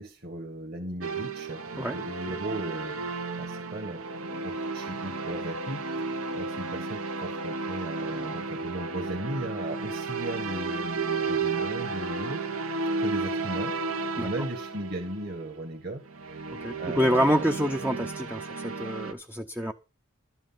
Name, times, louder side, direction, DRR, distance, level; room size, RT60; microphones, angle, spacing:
voice 1, 0.0-3.0 3.4-4.0 4.4-5.8 6.3-12.4 13.0-13.8 14.1-16.0 16.3-16.4 16.8-17.5, right 1 dB, 45° right, 4 dB, 1.7 m, -36 dB
sound 1, 1.0-15.4 16.1-19.1, right 4 dB, 85° right, 1.4 m, -33 dB
voice 2, 16.6-19.7, equal, 10° right, 6 dB, 0.6 m, -27 dB
12.5 x 7.9 x 5.6 m, 0.30 s
head